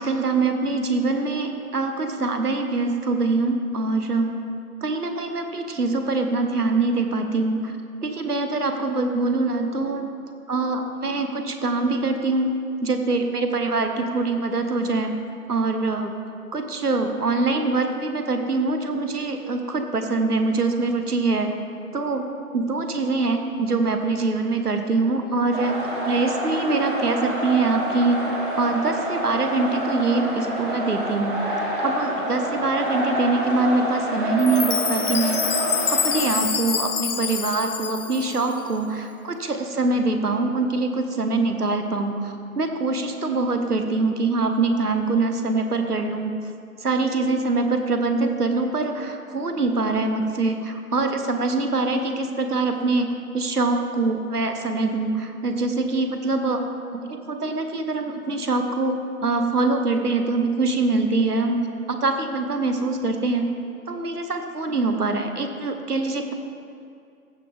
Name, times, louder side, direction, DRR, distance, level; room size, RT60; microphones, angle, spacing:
voice 1, 0.0-4.4 4.8-7.7 8.0-10.1 10.5-12.5 12.8-15.1 15.5-16.1 16.5-21.5 21.9-22.2 22.5-25.8 26.1-28.2 28.5-31.4 31.8-35.5 35.9-46.3 46.8-53.1 53.3-56.6 56.9-59.0 59.2-61.6 61.9-63.5 63.9-66.3, right 3 dB, 75° right, 6 dB, 1.2 m, -24 dB
sound 1, 25.5-36.4, equal, 35° right, 1.2 m, -28 dB
Chime, 34.4-38.6, left 7 dB, 65° left, 0.6 m, -26 dB
15.0 x 6.0 x 3.4 m, 2.4 s
figure-of-eight pair, 155°, 46 cm